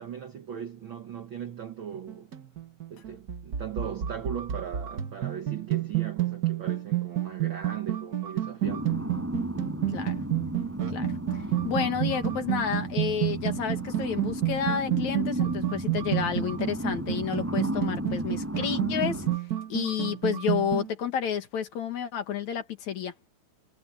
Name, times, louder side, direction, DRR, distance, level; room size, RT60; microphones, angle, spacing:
voice 1, 0.0-2.3 2.9-9.0, right 8 dB, 60° right, 1.3 m, -38 dB
sound 1, 2.0-20.9, right 13 dB, 80° right, 0.8 m, -30 dB
sound 2, 8.6-19.4, equal, 5° right, 6.2 m, -34 dB
voice 2, 10.9-19.3 19.7-23.1, left 8 dB, 60° left, 3.1 m, -30 dB
omnidirectional pair, 3.8 m